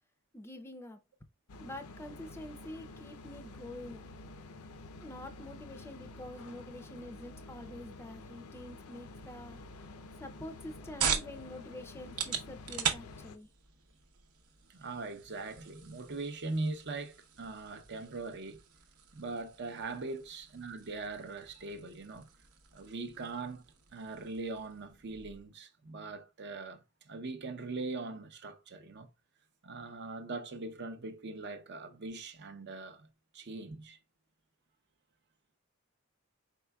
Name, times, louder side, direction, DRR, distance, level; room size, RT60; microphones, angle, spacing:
voice 1, 0.3-1.0 1.6-4.1 5.0-9.6 10.2-13.5, left 1 dB, 10° left, 0.5 m, -46 dB
sound 1, 1.5-13.4, left 2 dB, 85° left, 0.6 m, -49 dB
sound 2, 10.4-25.5, right 7 dB, 90° right, 0.9 m, -41 dB
voice 2, 14.7-18.6 19.1-22.3 22.7-29.1 29.6-33.1 33.3-34.0, right 3 dB, 50° right, 0.6 m, -41 dB
4.6 x 4.5 x 2.2 m
head